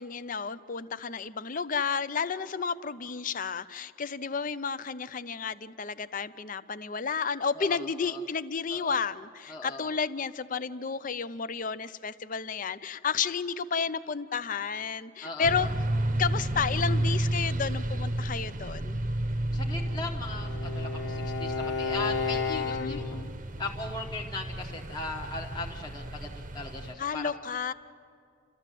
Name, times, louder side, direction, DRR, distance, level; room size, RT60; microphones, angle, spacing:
voice 1, 0.0-15.7 16.2-19.0 22.5-23.0 27.0-27.7, left 5 dB, 40° left, 14 dB, 0.5 m, -32 dB
voice 2, 7.5-8.2 8.7-9.0 9.5-9.9 15.2-15.7 19.5-23.2 23.6-26.3 26.5-27.3, left 3 dB, 20° left, -1 dB, 1.0 m, -38 dB
sound 1, 15.4-26.9, right 1 dB, 40° right, 0.8 m, -32 dB
Bowed string instrument, 19.6-23.3, left 5 dB, 60° left, 1.2 m, -33 dB
30.0 x 13.5 x 7.6 m, 2.4 s
head